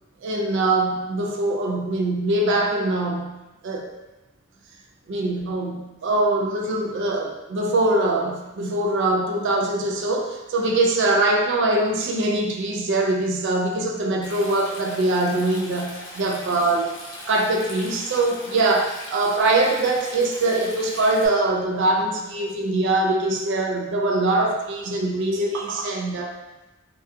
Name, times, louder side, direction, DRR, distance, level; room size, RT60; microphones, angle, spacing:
voice 1, 0.2-3.4 3.6-3.9 5.1-16.9 17.3-26.4, right 2 dB, 60° right, 1 dB, 0.4 m, -23 dB
Stream, 14.2-21.3, left 1 dB, 80° left, 0.6 m, -40 dB
2.3 x 2.2 x 2.6 m, 1.0 s
head